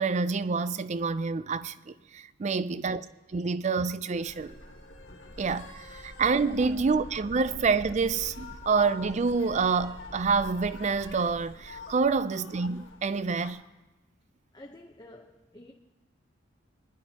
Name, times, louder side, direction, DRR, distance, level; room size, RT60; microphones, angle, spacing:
voice 1, 0.0-3.0 3.3-4.6 5.4-13.6, right 4 dB, 35° right, 0.4 m, -27 dB
voice 2, 2.6-3.0 6.7-6.9 12.3-12.4 14.5-15.7, left 1 dB, 20° left, 0.8 m, -49 dB
sound 1, 4.1-13.5, left 2 dB, 75° left, 2.0 m, -45 dB
24.5 x 11.0 x 2.9 m
head